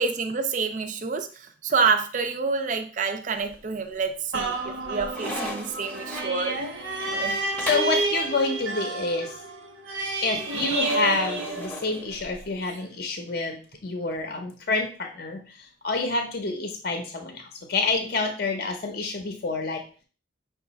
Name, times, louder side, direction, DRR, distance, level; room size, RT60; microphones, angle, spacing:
voice 1, 0.0-6.6 7.1-7.4, right 5 dB, 40° right, 7 dB, 0.4 m, -27 dB
sound 1, 3.3-3.9 4.3-8.0 10.5-12.5, left 1 dB, 10° left, 0.7 m, -37 dB
sound 2, 4.3-12.2 12.7-12.8, right 3 dB, 75° right, 0.9 m, -30 dB
voice 2, 7.6-9.3 10.2-15.4 15.8-17.4 17.7-19.8, left 3 dB, 50° left, 4 dB, 0.6 m, -28 dB
5.4 x 2.4 x 4.0 m, 0.39 s
head